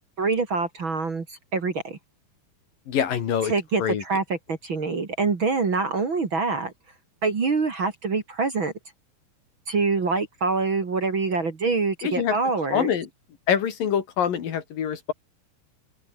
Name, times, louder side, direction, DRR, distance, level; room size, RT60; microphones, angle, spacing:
voice 1, 0.2-2.0 3.4-6.7 7.2-8.7 9.7-12.9, right 4 dB, 35° right, 2.7 m, -25 dB
voice 2, 2.9-3.5 3.8-4.0 12.0-12.4 12.7-13.1 13.5-15.1, left 8 dB, 70° left, 4.1 m, -25 dB
open air
omnidirectional pair, 4.2 m